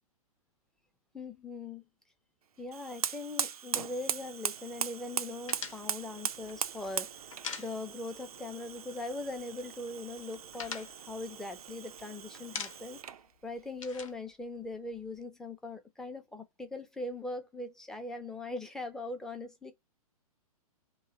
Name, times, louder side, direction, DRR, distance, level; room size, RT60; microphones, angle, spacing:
voice 1, 1.1-1.8 2.6-13.0 13.4-19.7, left 2 dB, 5° left, 0.5 m, -41 dB
Fire, 2.7-13.3, right 8 dB, 75° right, 0.4 m, -39 dB
sound 1, 5.5-8.3 8.5-8.7 9.0-9.7 10.0-12.0 12.3-13.1 13.4-15.2, left 6 dB, 60° left, 0.8 m, -43 dB
3.1 x 2.2 x 2.8 m
figure-of-eight pair, 115°, 19 cm